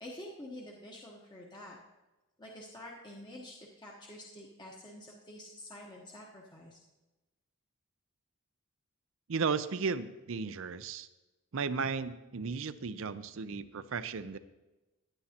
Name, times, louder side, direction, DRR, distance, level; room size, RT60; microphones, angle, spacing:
voice 1, 0.0-1.8 2.4-6.8, left 1 dB, 20° left, -2 dB, 1.0 m, -48 dB
voice 2, 9.3-11.1 11.5-14.4, right 5 dB, 65° right, 13 dB, 0.5 m, -35 dB
15.5 x 9.9 x 2.9 m, 1.1 s
head